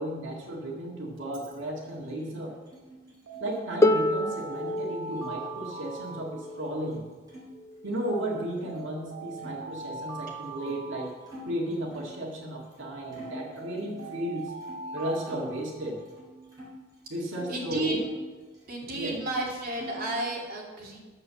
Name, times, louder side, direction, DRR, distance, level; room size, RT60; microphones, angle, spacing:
voice 1, 0.0-2.6 3.4-7.0 7.8-11.1 11.4-14.5 14.9-16.0 17.1-18.0 18.9-19.4, right 1 dB, 65° right, -1 dB, 1.9 m, -34 dB
Alarm, 1.2-1.5 3.3-7.0 8.1-11.9 13.0-16.2, right 4 dB, 85° right, 2.1 m, -42 dB
sound 1, 1.7-7.5 7.8-8.8 9.4-12.2 12.7-12.8 13.1-15.5 15.9-17.6 17.9-19.1 19.3-20.2, equal, 20° right, 3.8 m, -49 dB
Harp, 3.8-9.6 10.7-10.8, left 1 dB, 15° left, 0.4 m, -30 dB
voice 2, 17.5-18.0 18.7-21.0, right 2 dB, 45° right, -3 dB, 2.8 m, -32 dB
9.4 x 7.0 x 6.9 m, 1.3 s
head